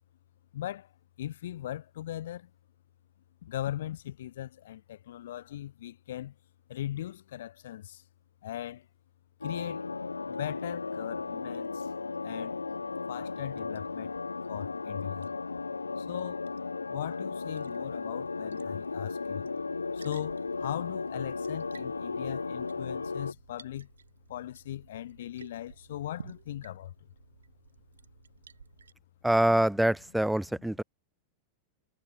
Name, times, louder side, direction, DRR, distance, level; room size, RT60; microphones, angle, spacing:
voice 1, 0.5-0.9 1.2-2.5 3.4-6.3 6.7-8.0 8.4-8.9 9.4-9.8 10.3-11.9 12.2-12.5 13.1-14.1 14.5-15.3 16.0-16.4 16.9-19.5 19.9-23.9 24.3-26.9 30.6-30.7, left 12 dB, 60° left, 0.5 m, -39 dB
sound 1, 9.4-23.3, left 4 dB, 80° left, 1.2 m, -35 dB
Liquid, 10.0-28.9, right 6 dB, 70° right, 3.5 m, -56 dB
voice 2, 29.2-30.8, right 1 dB, 5° right, 0.5 m, -25 dB
figure-of-eight pair, 90°, 0 cm